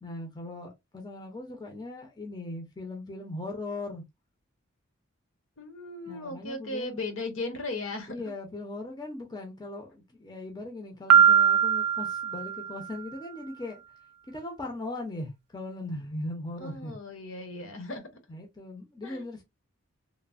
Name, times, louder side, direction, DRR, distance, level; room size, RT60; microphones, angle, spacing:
voice 1, 0.0-4.0 6.1-7.0 8.1-13.8 14.3-16.9 18.3-19.4, left 2 dB, 20° left, 0.5 m, -39 dB
voice 2, 5.6-8.3 16.6-18.1 19.0-19.2, left 2 dB, 60° left, 0.7 m, -37 dB
Piano, 11.1-13.0, right 8 dB, 85° right, 0.4 m, -21 dB
3.1 x 2.0 x 2.4 m
head